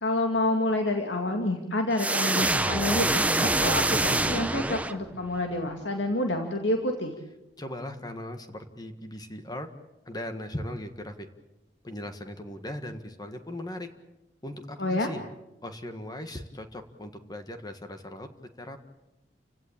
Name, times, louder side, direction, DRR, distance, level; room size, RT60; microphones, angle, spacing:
voice 1, 0.0-7.1 14.8-15.1, left 1 dB, 75° left, 4 dB, 2.2 m, -28 dB
sound 1, 2.0-5.3, right 2 dB, 10° right, 0.9 m, -25 dB
voice 2, 7.6-9.7 10.0-11.3 11.8-13.9 14.4-15.2 15.6-18.3 18.6-18.8, left 1 dB, 20° left, 7 dB, 1.6 m, -38 dB
30.0 x 17.0 x 8.8 m, 0.97 s
head